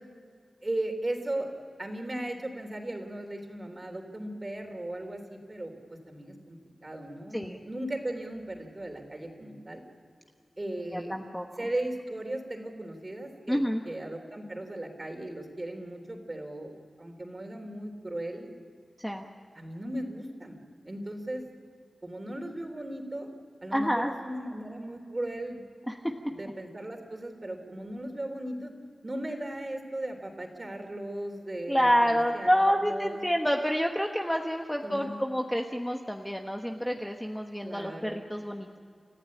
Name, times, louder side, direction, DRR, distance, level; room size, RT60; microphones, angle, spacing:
voice 1, 0.6-1.5 1.8-9.8 10.6-11.1 11.6-18.5 19.5-20.6 20.8-21.5 22.0-23.3 23.6-25.6 26.4-28.7 29.0-33.2 34.8-35.2 37.6-38.2, right 1 dB, 25° right, 4 dB, 3.5 m, -37 dB
voice 2, 10.9-11.7 13.5-13.8 19.0-19.2 23.7-24.1 25.9-26.1 31.7-38.8, equal, 5° left, 2 dB, 1.2 m, -28 dB
29.5 x 15.0 x 8.7 m, 2.2 s
wide cardioid pair, 115°, 0 cm